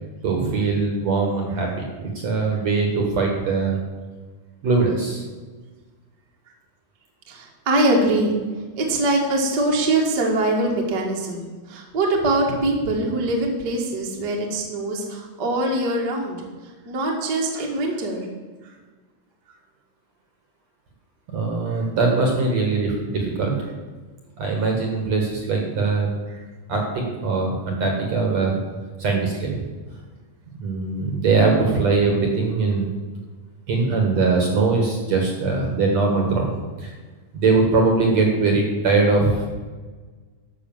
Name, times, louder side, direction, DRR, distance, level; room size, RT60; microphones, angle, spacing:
voice 1, 0.2-3.8 4.6-5.2 21.3-23.6 24.4-26.1 26.7-28.5 29.0-29.6 30.6-32.9 33.7-36.5 36.8-36.9 37.3-39.4, right 4 dB, 55° right, 1 dB, 2.3 m, -21 dB
voice 2, 7.3-8.3 8.8-16.4 16.8-18.3 21.7-21.8, right 2 dB, 40° right, -1 dB, 1.7 m, -23 dB
12.5 x 6.4 x 7.3 m, 1.4 s
omnidirectional pair, 4.6 m